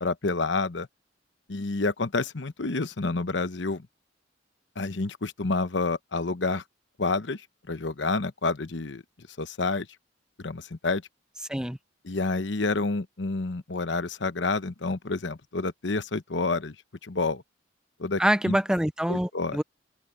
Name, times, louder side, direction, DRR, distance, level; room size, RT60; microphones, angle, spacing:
voice 1, 0.0-0.9 1.5-3.9 4.8-6.6 7.0-7.4 7.7-9.0 9.4-9.9 10.4-11.0 12.0-16.7 17.0-17.4 18.0-18.6 19.1-19.6, left 3 dB, 70° left, 1.0 m, -29 dB
voice 2, 18.2-19.6, equal, 5° right, 0.7 m, -25 dB
head